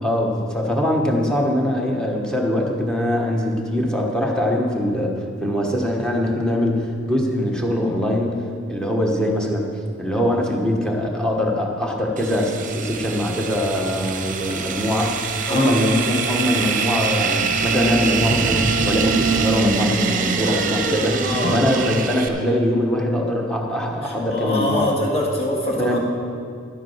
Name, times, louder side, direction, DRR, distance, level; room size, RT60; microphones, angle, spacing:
voice 1, 0.0-9.7 10.0-15.2 15.5-21.3 21.5-24.9 25.8-26.0, left 1 dB, 5° left, 0 dB, 1.3 m, -22 dB
sound 1, 12.2-22.3, right 5 dB, 40° right, 0.8 m, -23 dB
voice 2, 21.2-21.7 24.0-26.0, left 1 dB, 30° left, -2 dB, 2.0 m, -24 dB
11.5 x 8.6 x 5.7 m, 2.3 s
head